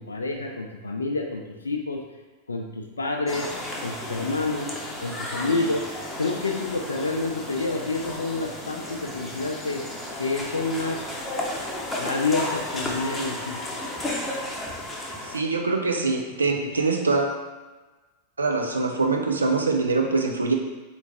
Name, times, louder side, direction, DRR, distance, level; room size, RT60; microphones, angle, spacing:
voice 1, 0.0-2.0 2.5-3.5 3.8-4.7 5.0-5.9 6.2-9.8 10.2-11.0 11.6-11.7 12.0-13.6 16.6-16.7, left 3 dB, 75° left, 2 dB, 0.4 m, -28 dB
sound 1, 3.3-15.4, left 1 dB, 15° left, 0.7 m, -33 dB
voice 2, 15.3-17.4 18.4-20.5, right 3 dB, 75° right, 2 dB, 0.5 m, -24 dB
4.0 x 3.1 x 3.4 m, 1.3 s
figure-of-eight pair, 90°, 0 cm